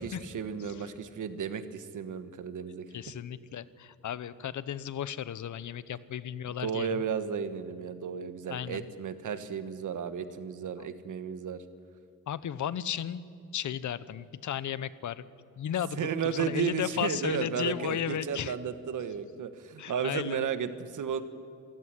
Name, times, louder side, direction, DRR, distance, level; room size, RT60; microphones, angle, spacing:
voice 1, 0.0-2.9 6.6-11.6 16.0-21.2, right 7 dB, 85° right, 11 dB, 1.5 m, -33 dB
voice 2, 2.9-7.0 8.5-8.8 12.3-13.3 13.5-15.2 15.6-18.5 19.8-20.4, left 9 dB, 75° left, 16 dB, 0.9 m, -34 dB
27.0 x 15.5 x 10.0 m, 2.5 s
wide cardioid pair, 145°, 30 cm